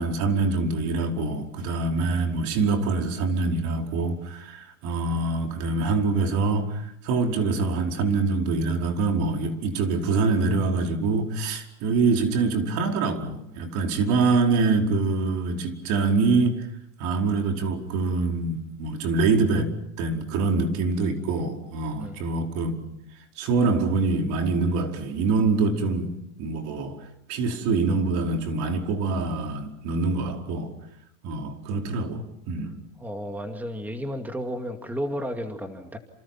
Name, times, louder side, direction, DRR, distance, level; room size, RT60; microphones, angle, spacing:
voice 1, 0.0-16.7 17.0-19.7 20.0-22.8 23.4-26.1 26.4-27.0 27.3-30.7 31.2-32.7, right 3 dB, 50° right, 5.0 m, -25 dB
voice 2, 33.0-36.0, equal, 5° right, 2.5 m, -32 dB
30.0 x 27.5 x 6.0 m
supercardioid pair, 120°, 36 cm